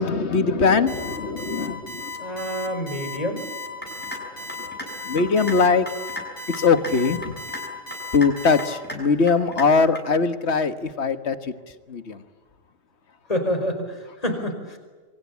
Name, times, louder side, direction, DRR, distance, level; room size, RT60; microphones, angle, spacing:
voice 1, 0.0-2.1 5.1-5.9 6.5-7.4 8.1-11.4 11.9-12.2, left 4 dB, 60° left, 10 dB, 1.7 m, -21 dB
Alarm, 0.9-8.7, left 2 dB, 75° left, 6.3 m, -35 dB
voice 2, 2.2-3.5 13.3-14.8, equal, 30° left, 6 dB, 5.1 m, -27 dB
sound 1, 3.8-4.2 4.5-4.9 5.2-5.6 5.9-6.2 6.5-6.9 7.2-7.6 7.9-8.3 8.6-9.0 9.3-9.7 10.0-10.1, left 1 dB, 10° left, 5.8 m, -34 dB
27.5 x 23.5 x 8.5 m, 1.4 s
omnidirectional pair, 1.3 m